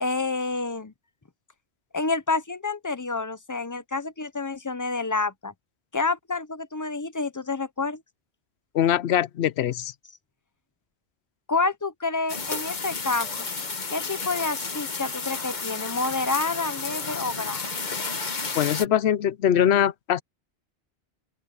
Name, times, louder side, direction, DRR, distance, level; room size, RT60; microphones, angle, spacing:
voice 1, 0.0-0.9 1.9-5.5 5.9-8.0 11.5-13.5 13.9-17.7, left 3 dB, 20° left, 0.7 m, -28 dB
voice 2, 8.7-9.9 18.5-20.2, left 10 dB, 90° left, 0.9 m, -22 dB
sound 1, 12.3-18.9, left 4 dB, 45° left, 1.3 m, -32 dB
open air
omnidirectional pair, 1.1 m